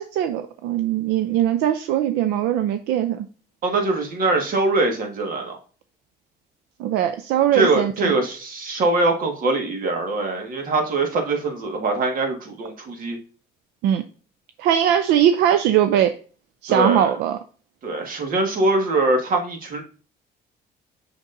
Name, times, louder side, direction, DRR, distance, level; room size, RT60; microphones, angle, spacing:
voice 1, 0.0-3.3 6.8-8.2 13.8-14.0 14.6-16.1 16.6-17.4, right 10 dB, 85° right, 9 dB, 0.5 m, -20 dB
voice 2, 3.6-5.6 7.5-13.2 16.7-17.1 17.8-19.8, right 2 dB, 55° right, 3 dB, 1.6 m, -22 dB
6.5 x 5.9 x 2.6 m, 0.37 s
cardioid pair, 110°, 17 cm